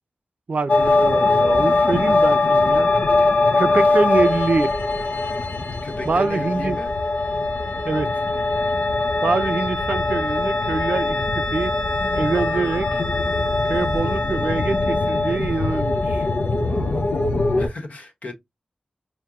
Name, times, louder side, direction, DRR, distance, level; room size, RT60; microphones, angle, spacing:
voice 1, 0.5-2.9 3.6-4.7 6.0-6.8 7.9-8.1 9.2-11.2 11.5-11.8 12.1-13.0 13.7-16.3, right 4 dB, 65° right, 0.5 m, -24 dB
sound 1, 0.7-17.7, left 2 dB, 90° left, 0.7 m, -21 dB
voice 2, 5.8-6.9 16.6-17.1 17.6-18.3, left 2 dB, 65° left, 1.1 m, -35 dB
4.5 x 2.1 x 3.6 m
cardioid pair, 55°, 3 cm